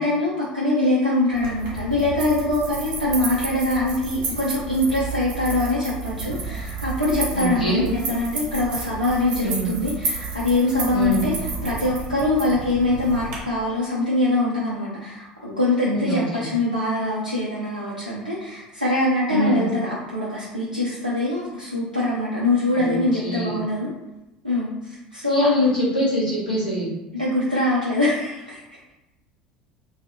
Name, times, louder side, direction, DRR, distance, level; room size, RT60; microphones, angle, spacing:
voice 1, 0.0-23.9 24.4-25.5 27.1-28.6, left 2 dB, 90° right, -8 dB, 0.5 m, -23 dB
sound 1, 1.3-13.4, right 4 dB, 60° right, 1.0 m, -31 dB
voice 2, 7.3-7.8 9.4-9.7 10.9-11.2 15.8-16.5 19.3-19.6 22.7-23.6 25.3-26.9, left 1 dB, 80° left, -8 dB, 1.3 m, -24 dB
3.1 x 2.8 x 2.6 m, 0.96 s
figure-of-eight pair, 70°, 4 cm